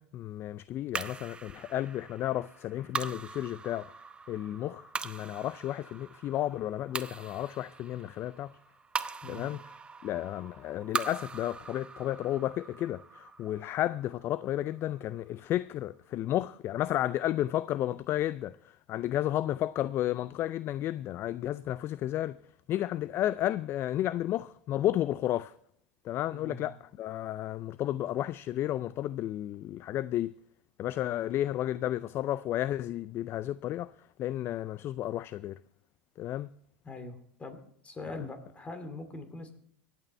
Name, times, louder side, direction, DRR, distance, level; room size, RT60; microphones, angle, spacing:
voice 1, 0.0-3.9 4.3-8.5 9.3-9.6 10.0-22.4 22.7-25.5 26.0-30.3 30.8-33.9 34.2-35.6 36.2-36.5, left 13 dB, 40° left, 0.4 m, -32 dB
sound 1, 0.9-15.4, right 4 dB, 15° right, 0.8 m, -41 dB
voice 2, 9.2-9.5 26.3-26.7 36.8-37.6 37.8-39.5, left 2 dB, 20° left, 2.7 m, -42 dB
24.5 x 9.0 x 3.3 m
hypercardioid pair, 85°, 6 cm